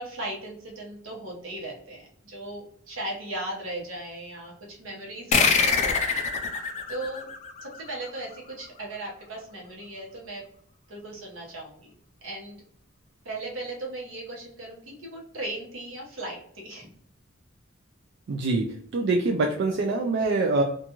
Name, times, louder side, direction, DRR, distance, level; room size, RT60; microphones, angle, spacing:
voice 1, 0.0-7.3 7.6-10.4 10.9-11.9 12.2-12.6 13.2-16.9, right 1 dB, 80° right, -2 dB, 1.0 m, -37 dB
sound 1, 5.3-8.4, left 5 dB, 35° left, 0.4 m, -25 dB
voice 2, 18.3-20.6, right 3 dB, 60° right, 2 dB, 0.3 m, -25 dB
2.5 x 2.3 x 2.9 m, 0.63 s
head